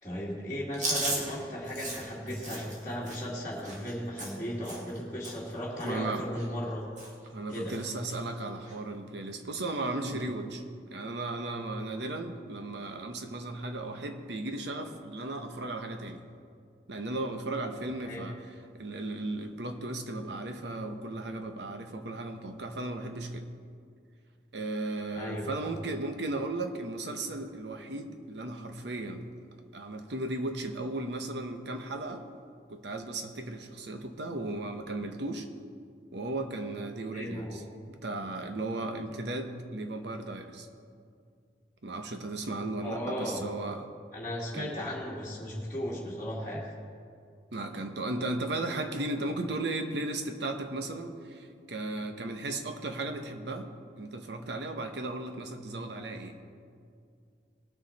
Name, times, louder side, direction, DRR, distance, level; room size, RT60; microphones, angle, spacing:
voice 1, 0.0-6.8 7.5-7.7 18.0-18.2 25.1-25.5 37.1-37.6 42.8-43.4 44.1-46.6, equal, 15° left, -9 dB, 2.0 m, -36 dB
Chewing mastication, 0.7-5.0 5.2-5.5 5.8-6.7 7.0-7.3 7.5-8.2 8.6-8.8 9.8-10.2, right 1 dB, 45° right, 2.1 m, -37 dB
voice 2, 5.8-6.2 7.3-10.6 10.9-16.2 16.9-23.5 24.5-29.2 29.7-32.2 32.7-35.5 36.1-37.6 37.9-40.7 41.8-43.9 44.5-44.7 47.5-53.7 54.0-56.4, right 2 dB, 75° right, 6 dB, 1.0 m, -36 dB
19.5 x 6.7 x 4.2 m, 2.3 s
head